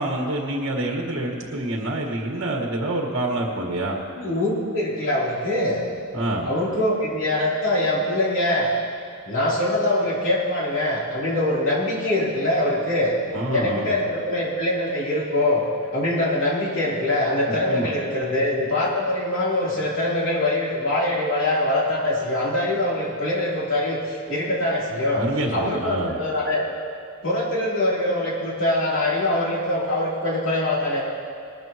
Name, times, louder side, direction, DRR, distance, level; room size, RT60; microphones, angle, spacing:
voice 1, 0.0-4.0 6.1-6.5 13.3-13.9 17.7-17.9 25.1-26.2, right 1 dB, 60° right, 0 dB, 1.7 m, -27 dB
voice 2, 4.2-5.9 6.4-8.7 9.2-13.2 13.5-15.6 15.9-25.2 25.5-26.6 27.2-31.0, left 1 dB, 65° left, -6 dB, 3.6 m, -23 dB
20.0 x 13.0 x 3.1 m, 2.4 s
head